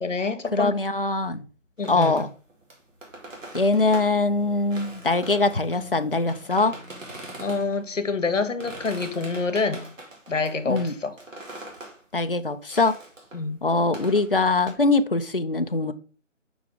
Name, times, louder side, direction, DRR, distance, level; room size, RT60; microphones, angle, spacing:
voice 1, 0.0-0.8 1.8-2.1 7.4-9.9 10.3-11.1 13.3-13.6, left 4 dB, 75° left, 1.1 m, -27 dB
voice 2, 0.5-1.4 1.9-2.3 3.5-6.8 10.7-10.9 12.1-12.9 13.6-15.9, left 3 dB, 50° left, 0.4 m, -22 dB
sound 1, 0.9-1.6 2.2-2.3 2.6-8.6, left 1 dB, 40° right, 2.8 m, -49 dB
sound 2, 1.8-4.2 4.7-7.8 8.4-12.0 12.7-13.6 13.9-14.7, right 1 dB, 80° right, 2.2 m, -42 dB
6.0 x 4.7 x 3.6 m
figure-of-eight pair, 180°, 38 cm